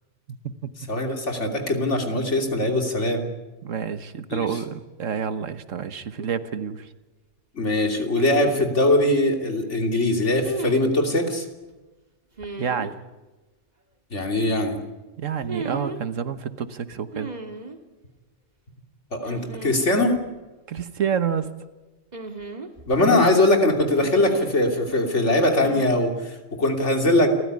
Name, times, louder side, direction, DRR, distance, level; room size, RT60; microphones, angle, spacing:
voice 1, 0.3-0.7 3.6-6.9 12.6-13.0 15.2-17.3 20.7-21.5 23.1-23.4, right 7 dB, 75° right, 11 dB, 1.5 m, -28 dB
voice 2, 0.9-3.3 4.3-4.6 7.5-11.4 14.1-14.8 19.1-20.2 22.9-27.3, left 1 dB, 65° left, 3 dB, 3.3 m, -21 dB
sound 1, 6.2-6.3 8.1-8.7 10.4-10.9 12.4-12.9 15.4-16.0 17.1-17.8 19.2-19.9 20.1-20.2 22.1-23.0 23.9-24.6 25.6-25.9, right 3 dB, 35° right, 2.0 m, -34 dB
29.0 x 14.5 x 9.6 m, 1.2 s
omnidirectional pair, 1.3 m